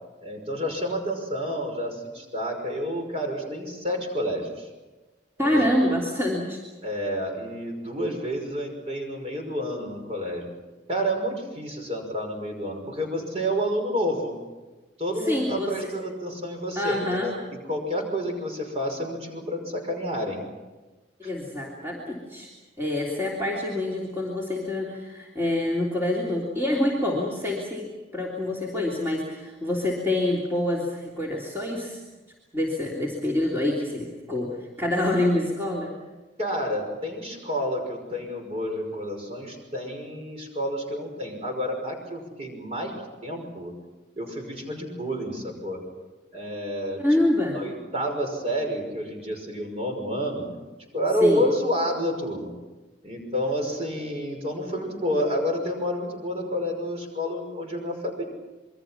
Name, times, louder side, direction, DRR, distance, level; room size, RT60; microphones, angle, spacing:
voice 1, 0.2-4.7 5.4-5.6 6.8-10.5 10.9-14.4 15.0-17.4 17.7-20.4 21.2-21.3 36.4-42.9 43.2-43.7 44.2-45.8 46.3-47.0 47.5-50.5 50.9-52.6 53.0-58.3, equal, 30° right, 2 dB, 5.8 m, -29 dB
voice 2, 5.4-6.6 15.2-15.7 16.7-17.3 21.2-22.5 22.8-32.0 32.5-35.9 47.0-47.6 51.2-51.4, left 1 dB, 10° right, -4 dB, 3.2 m, -26 dB
27.0 x 23.0 x 6.0 m, 1.2 s
head